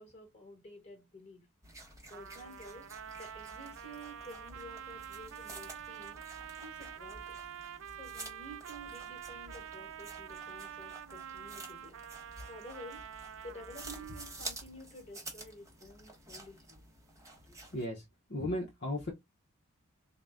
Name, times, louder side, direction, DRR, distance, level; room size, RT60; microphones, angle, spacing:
voice 1, 0.0-1.5 2.1-2.9 3.2-6.2 6.6-7.4 8.0-12.0 12.5-13.0 13.4-16.8, equal, 30° left, 1.3 m, -51 dB
sound 1, 1.6-17.9, right 2 dB, 15° right, 0.8 m, -50 dB
Trumpet, 2.1-14.6, right 9 dB, 60° right, 0.3 m, -47 dB
voice 2, 17.7-18.0 18.3-19.1, left 1 dB, 45° left, 0.7 m, -35 dB
3.8 x 2.1 x 3.4 m
head